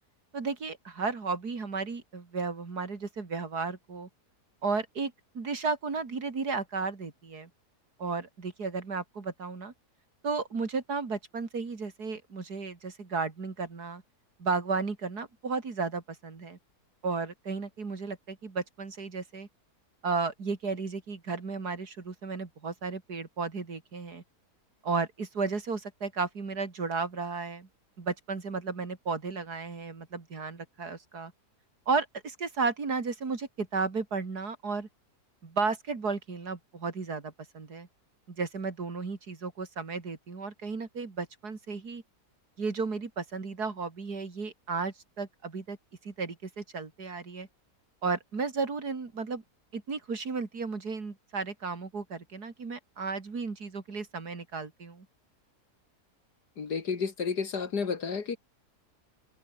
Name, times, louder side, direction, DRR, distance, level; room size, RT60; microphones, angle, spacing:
voice 1, 0.3-4.1 4.6-7.5 8.0-9.7 10.2-14.0 14.4-16.6 17.0-19.5 20.0-24.2 24.8-27.7 28.0-31.3 31.9-34.9 35.4-37.9 38.3-42.0 42.6-45.8 46.0-47.5 48.0-49.4 49.7-55.1, right 4 dB, 75° right, 3.5 m, -34 dB
voice 2, 56.6-58.4, left 5 dB, 85° left, 2.9 m, -31 dB
omnidirectional pair, 1.7 m